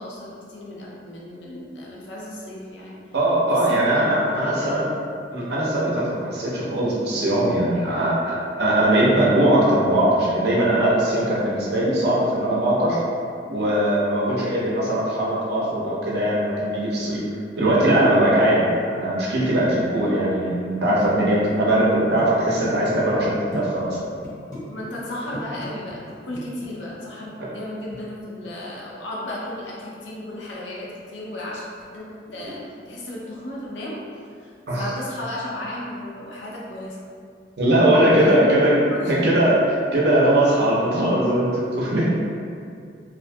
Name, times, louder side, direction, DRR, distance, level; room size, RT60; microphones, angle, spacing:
voice 1, 0.0-3.0 3.7-4.8 14.3-14.6 21.7-21.8 24.7-34.0 34.4-37.0 38.2-38.5 38.9-39.1, left 1 dB, 80° left, -5 dB, 0.5 m, -34 dB
voice 2, 3.1-4.8 5.3-13.0 13.5-17.2 17.6-24.0 34.7-34.8 37.6-38.8 39.1-42.1, right 1 dB, 65° right, -5 dB, 0.6 m, -20 dB
sound 1, 21.8-21.9 22.2-23.6 24.0-24.6 24.9-25.1 25.3-26.7, left 1 dB, 20° left, 0.8 m, -36 dB
2.4 x 2.2 x 2.6 m, 2.3 s
head